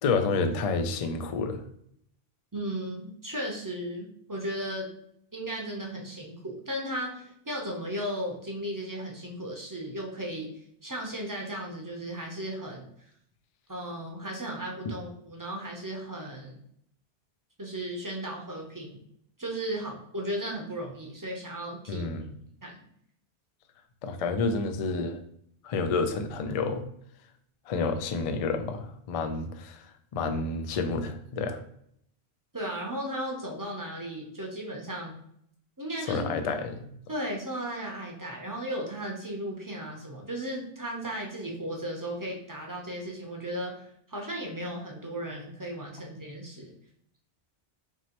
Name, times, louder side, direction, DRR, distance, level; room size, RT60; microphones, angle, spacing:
voice 1, 0.0-1.6 21.9-22.3 24.0-25.2 25.6-26.8 27.7-29.8 30.1-31.6 36.1-36.8, left 4 dB, 60° left, 7 dB, 0.4 m, -29 dB
voice 2, 2.5-4.9 5.3-12.8 13.7-16.5 17.6-19.0 19.4-22.1 22.6-22.8 32.5-35.2 35.8-36.3 37.1-46.7, right 1 dB, 20° right, -1 dB, 0.6 m, -35 dB
4.5 x 2.9 x 2.9 m, 0.71 s
omnidirectional pair, 1.1 m